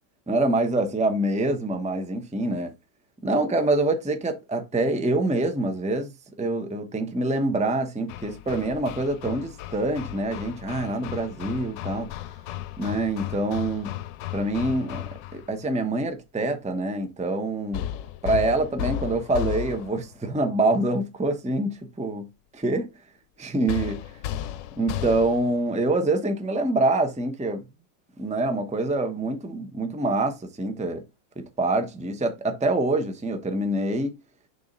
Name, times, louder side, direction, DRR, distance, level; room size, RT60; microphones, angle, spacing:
voice 1, 0.3-2.7 3.2-6.1 6.4-12.1 12.8-14.0 14.3-15.1 15.3-17.8 18.2-22.3 22.5-22.9 23.4-24.0 24.8-27.6 28.2-31.0 31.4-34.2, right 2 dB, 5° right, 0.7 m, -25 dB
Hammer, 8.1-15.5 17.7-20.1 23.7-25.6, left 12 dB, 80° left, 1.3 m, -34 dB
6.9 x 3.7 x 5.3 m
omnidirectional pair, 1.9 m